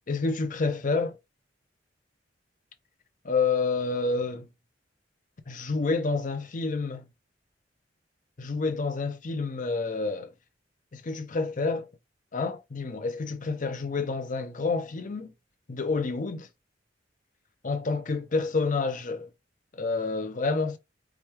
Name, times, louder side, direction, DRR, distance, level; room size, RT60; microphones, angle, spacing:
voice 1, 0.1-1.2 3.2-4.5 5.5-7.1 8.4-10.3 10.9-11.9 12.3-15.3 15.7-16.5 17.6-19.3 19.7-20.8, left 4 dB, 45° left, 0.6 m, -28 dB
4.8 x 2.3 x 3.0 m
head